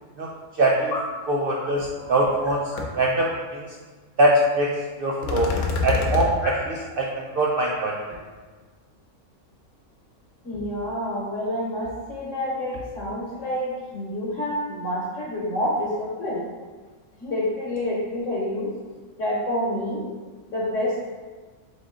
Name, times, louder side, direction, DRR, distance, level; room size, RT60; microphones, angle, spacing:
voice 1, 0.6-0.9 1.3-2.6 2.9-3.6 4.2-4.7 5.0-5.5 5.8-6.5 7.0-7.1 7.4-8.0, right 1 dB, 80° right, -2 dB, 0.5 m, -22 dB
sound 1, 1.8-1.9 2.2-2.5 2.8-2.9 5.2-6.3, left 5 dB, 85° left, 1.1 m, -25 dB
voice 2, 10.4-16.4 17.2-18.7 19.2-20.0 20.5-21.1, left 1 dB, 60° left, -5 dB, 1.2 m, -28 dB
3.7 x 3.6 x 3.6 m, 1.4 s
omnidirectional pair, 1.5 m